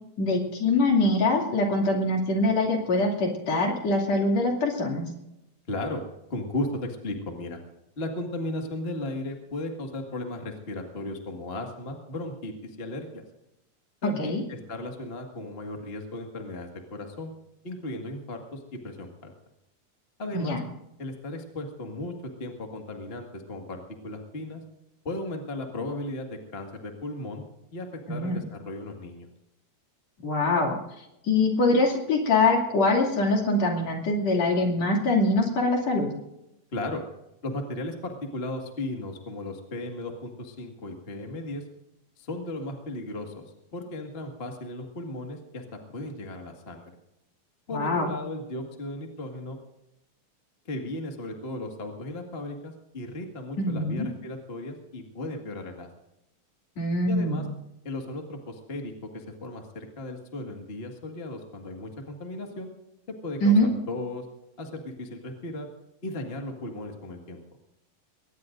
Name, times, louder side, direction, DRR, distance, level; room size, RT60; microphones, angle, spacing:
voice 1, 0.2-5.1 14.2-14.4 20.3-20.6 28.1-28.4 30.2-30.8 31.2-36.1 47.7-48.1 53.6-54.1 56.8-57.4 63.4-63.7, left 2 dB, 50° left, 1 dB, 3.6 m, -23 dB
voice 2, 5.7-6.0 6.3-7.6 8.0-13.2 14.0-17.3 17.6-19.3 20.2-20.6 21.0-22.1 22.4-24.6 25.0-27.4 27.7-29.3 36.7-37.0 37.4-41.6 42.2-43.4 43.7-45.6 45.9-46.9 47.7-49.6 50.6-55.9 57.0-57.4 57.8-62.7 63.2-63.5 63.9-64.2 64.6-65.7 66.0-67.4, left 1 dB, 30° left, 2 dB, 1.1 m, -35 dB
22.0 x 19.5 x 2.6 m, 0.89 s
omnidirectional pair, 4.1 m